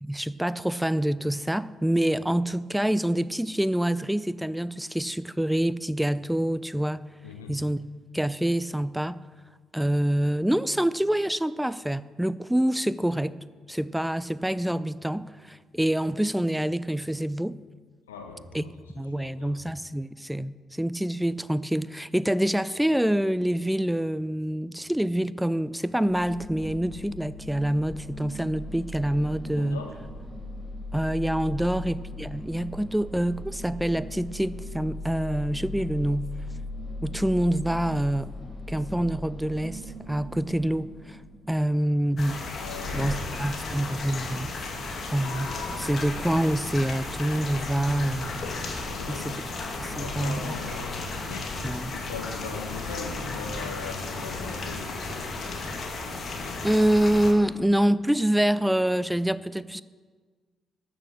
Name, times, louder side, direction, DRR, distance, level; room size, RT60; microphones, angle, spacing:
voice 1, 0.0-7.0 7.5-7.8 8.1-9.2 9.7-13.4 13.7-17.5 18.5-18.6 19.0-29.8 30.9-36.3 37.0-38.3 38.7-39.8 40.1-41.2 41.5-42.5 42.9-44.5 45.1-48.3 49.1-49.4 49.8-50.6 51.6-51.9 56.6-59.8, right 1 dB, 5° right, 17 dB, 0.5 m, -26 dB
voice 2, 7.2-7.6 18.1-18.7 19.1-19.5 29.6-29.9 31.6-31.7 42.6-43.3 48.9-49.4 49.8-55.3, left 5 dB, 85° left, 4 dB, 1.2 m, -40 dB
sound 1, 26.1-42.0, left 1 dB, 25° left, 3.6 m, -39 dB
sound 2, 42.2-57.3, left 3 dB, 50° left, 2.2 m, -34 dB
13.0 x 6.9 x 6.8 m, 1.5 s
figure-of-eight pair, 40°, 0 cm